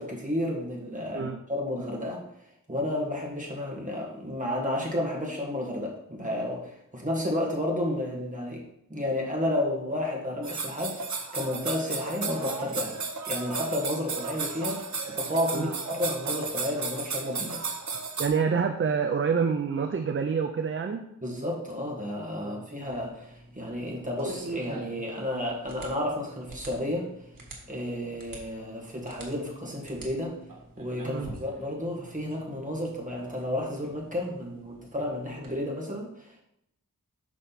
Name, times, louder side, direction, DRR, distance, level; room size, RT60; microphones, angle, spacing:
voice 1, 0.0-2.2 2.7-8.6 8.9-11.0 11.3-13.0 13.3-17.6 21.2-27.1 27.7-30.4 30.8-36.4, left 1 dB, 25° right, -2 dB, 1.7 m, -31 dB
sound 1, 10.4-18.3, right 4 dB, 60° right, 0.8 m, -34 dB
voice 2, 18.2-21.0 22.4-22.6 31.0-31.3, right 6 dB, 40° right, 5 dB, 0.5 m, -27 dB
sound 2, 22.8-35.5, right 2 dB, 85° right, 1.5 m, -46 dB
6.1 x 5.0 x 4.1 m, 0.78 s
wide cardioid pair, 85°, 33 cm